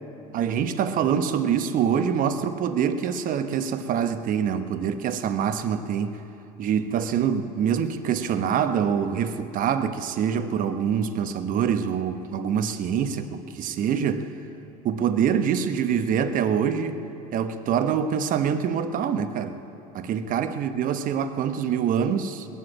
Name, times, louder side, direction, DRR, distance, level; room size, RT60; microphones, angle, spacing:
voice 1, 0.3-6.2 6.6-14.3 14.8-17.0 17.3-19.6 19.9-22.5, right 8 dB, 45° right, 1.1 m, -25 dB
21.0 x 7.7 x 8.7 m
hypercardioid pair, 85°, 19 cm